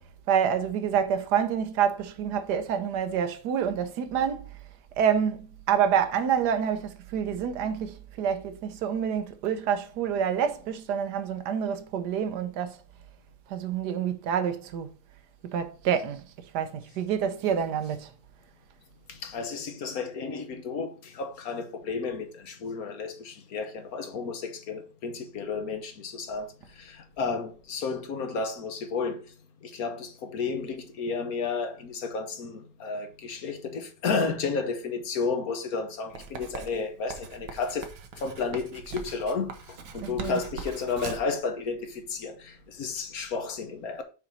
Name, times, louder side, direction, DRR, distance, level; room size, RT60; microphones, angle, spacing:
voice 1, 0.3-4.5 5.0-12.8 13.5-14.9 15.4-16.2 16.5-18.1 40.0-40.4, right 8 dB, 65° right, 1.3 m, -27 dB
voice 2, 19.1-29.3 29.6-37.9 38.2-44.0, left 4 dB, 55° left, 1.4 m, -32 dB
Writing, 36.1-41.4, right 6 dB, 85° right, 1.7 m, -41 dB
6.0 x 4.3 x 5.4 m
omnidirectional pair, 2.0 m